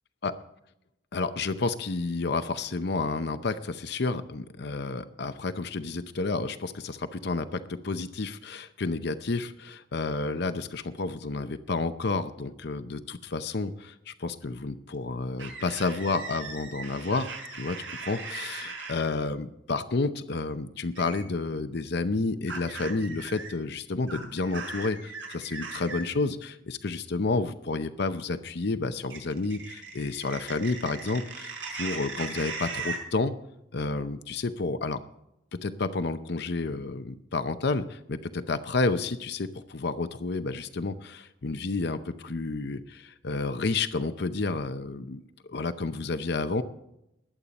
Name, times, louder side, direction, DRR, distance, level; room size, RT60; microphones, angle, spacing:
voice 1, 1.1-33.3 33.7-35.0 35.5-45.2 45.5-46.6, left 3 dB, 60° left, 10 dB, 0.7 m, -30 dB
sound 1, 15.4-19.0 21.0-21.2 22.5-23.5 24.1-26.0 29.1-33.0, right 4 dB, 75° right, 5.3 m, -38 dB
20.5 x 8.5 x 4.1 m, 0.83 s
head